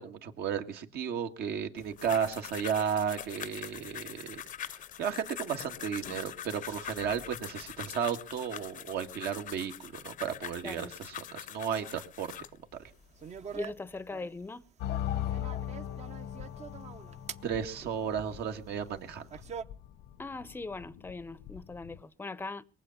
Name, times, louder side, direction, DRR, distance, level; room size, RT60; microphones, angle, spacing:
voice 1, 0.0-12.3 17.4-19.3, right 7 dB, 70° right, 1.9 m, -34 dB
sound 1, 1.8-12.6 13.2-13.7, left 10 dB, 50° left, 0.7 m, -43 dB
voice 2, 10.6-11.0 13.5-14.6 20.2-22.6, left 3 dB, 10° left, 0.7 m, -40 dB
sound 2, 12.7-19.6, right 7 dB, 40° right, 0.8 m, -46 dB
sound 3, 14.8-22.0, left 11 dB, 80° left, 1.0 m, -39 dB
22.0 x 7.7 x 7.2 m
cardioid pair, 110°, 17 cm